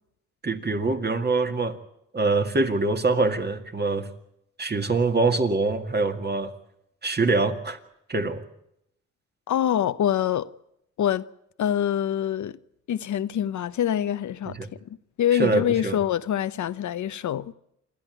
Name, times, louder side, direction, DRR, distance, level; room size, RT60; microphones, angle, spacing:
voice 1, 0.4-1.8 2.1-4.1 4.6-6.5 7.0-7.8 8.1-8.4 14.5-14.7 15.3-16.0, right 3 dB, 35° right, 2.1 m, -24 dB
voice 2, 9.5-10.5 11.0-11.3 11.6-12.5 12.9-14.6 14.9-17.5, left 10 dB, 80° left, 0.8 m, -25 dB
27.0 x 12.5 x 9.3 m
cardioid pair, 95°, 29 cm